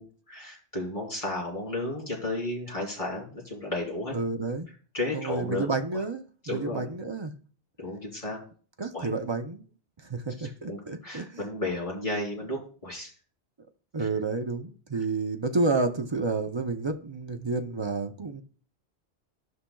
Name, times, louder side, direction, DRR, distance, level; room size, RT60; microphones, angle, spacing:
voice 1, 0.0-4.1 4.9-5.7 5.9-6.0 6.4-6.9 7.8-8.4 8.9-9.1 10.4-13.1 14.0-14.1 14.9-15.0, left 2 dB, 30° left, 3.1 m, -33 dB
voice 2, 4.1-4.7 5.1-7.3 8.8-9.7 10.0-11.4 13.9-18.4, right 3 dB, 35° right, 0.5 m, -30 dB
14.0 x 5.7 x 2.3 m
omnidirectional pair, 1.1 m